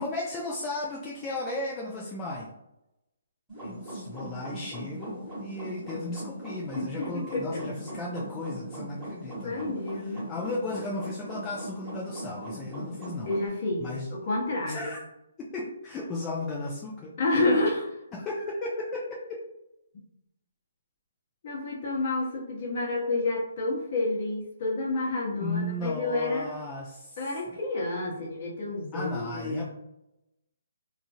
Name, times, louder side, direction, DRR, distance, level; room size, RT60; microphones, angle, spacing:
voice 1, 0.0-2.5 3.6-13.3 13.8-14.1 14.7-15.0 15.4-17.1 18.1-19.4 25.4-27.6 28.9-29.7, left 2 dB, 15° left, -4 dB, 0.4 m, -35 dB
sound 1, 3.5-13.5, right 1 dB, 10° right, 1.4 m, -40 dB
voice 2, 6.7-7.6 9.4-10.2 13.3-14.9 17.2-18.0 21.4-26.5 27.2-29.7, left 2 dB, 45° left, -3 dB, 1.0 m, -29 dB
2.8 x 2.4 x 2.6 m, 0.89 s
hypercardioid pair, 160°, 0 cm